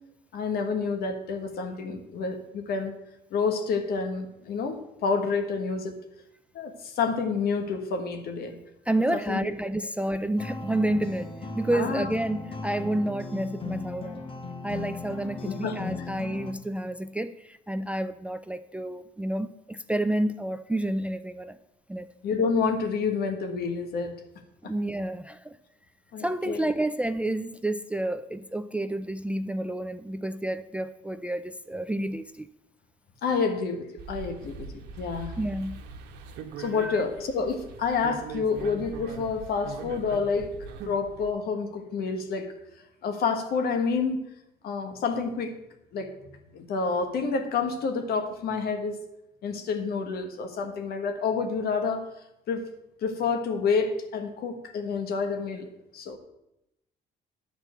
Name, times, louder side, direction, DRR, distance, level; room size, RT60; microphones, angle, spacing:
voice 1, 0.3-2.9 3.3-6.0 6.5-8.6 9.1-9.5 11.7-12.1 15.4-15.8 22.2-24.1 26.1-26.7 33.2-35.3 36.6-40.5 40.8-42.5 43.0-44.2 44.6-45.5 45.9-46.1 46.5-49.0 49.4-52.0 52.5-52.6 53.0-55.7 55.9-56.2, left 5 dB, 65° left, 7 dB, 1.5 m, -28 dB
voice 2, 8.9-14.3 14.6-21.6 21.9-22.1 24.6-25.6 26.2-32.5 35.4-35.8 36.6-37.0, right 1 dB, 5° right, 12 dB, 0.3 m, -30 dB
sound 1, 10.4-16.5, left 3 dB, 30° left, 1.3 m, -37 dB
sound 2, 34.0-41.3, right 5 dB, 85° right, 1.2 m, -41 dB
11.0 x 4.4 x 7.8 m, 0.86 s
cardioid pair, 110°, 17 cm